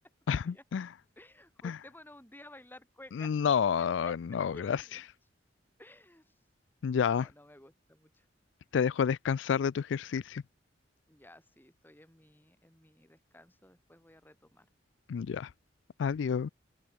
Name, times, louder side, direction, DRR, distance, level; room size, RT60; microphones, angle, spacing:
voice 1, 0.3-0.9 1.6-1.8 3.1-5.0 6.8-7.3 8.7-10.4 15.1-15.5 16.0-16.5, left 7 dB, 85° left, 0.4 m, -29 dB
voice 2, 1.2-3.3 4.0-4.1 4.5-5.0 5.8-6.3 6.9-8.3 11.1-14.7, left 1 dB, 10° left, 5.5 m, -55 dB
open air
head